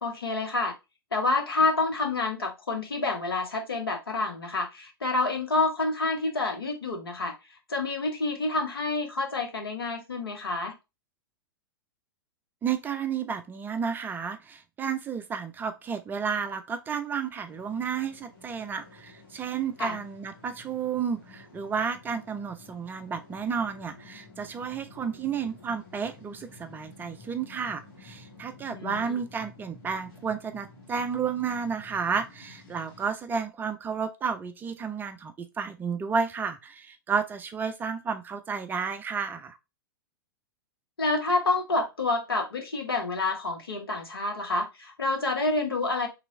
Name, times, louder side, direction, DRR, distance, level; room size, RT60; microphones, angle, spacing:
voice 1, 0.0-0.7 1.1-7.4 7.7-10.8 19.8-20.0 28.7-29.2 41.0-46.1, left 3 dB, 75° left, 1.0 m, -28 dB
voice 2, 12.6-39.6, right 6 dB, 15° right, 0.4 m, -32 dB
sound 1, 17.4-33.1, left 3 dB, 55° left, 1.6 m, -51 dB
3.3 x 3.0 x 3.7 m
figure-of-eight pair, 100°, 12 cm